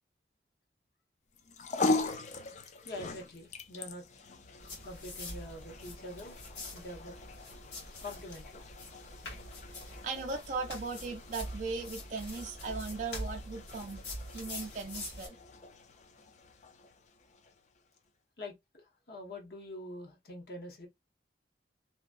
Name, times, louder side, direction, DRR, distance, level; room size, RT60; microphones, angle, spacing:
sound 1, 1.3-17.8, left 3 dB, 40° left, 0.4 m, -41 dB
voice 1, 2.8-4.0 4.8-6.4 6.7-7.1 8.0-8.6 18.4-20.9, left 1 dB, 60° left, 1.0 m, -45 dB
sound 2, 4.6-15.3, left 1 dB, 90° left, 1.7 m, -45 dB
voice 2, 10.0-14.0 14.3-15.4, right 4 dB, 45° right, 0.4 m, -38 dB
2.9 x 2.6 x 2.4 m
head